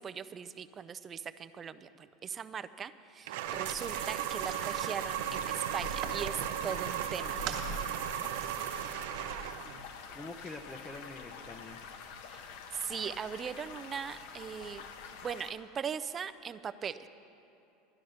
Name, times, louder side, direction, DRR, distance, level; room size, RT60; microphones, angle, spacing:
voice 1, 0.0-7.5 12.3-12.4 12.7-14.8 15.2-17.1, right 7 dB, 25° right, 13 dB, 0.4 m, -40 dB
sound 1, 3.3-9.8, right 12 dB, 75° right, 0.5 m, -36 dB
sound 2, 3.4-15.5, left 4 dB, 70° left, 1.1 m, -46 dB
sound 3, 3.7-6.3 6.8-7.6 8.1-8.5, right 8 dB, 45° right, 1.5 m, -44 dB
voice 2, 9.6-11.8, left 2 dB, 15° left, 2 dB, 0.6 m, -46 dB
12.0 x 11.0 x 6.5 m, 2.8 s
supercardioid pair, 140°, 0 cm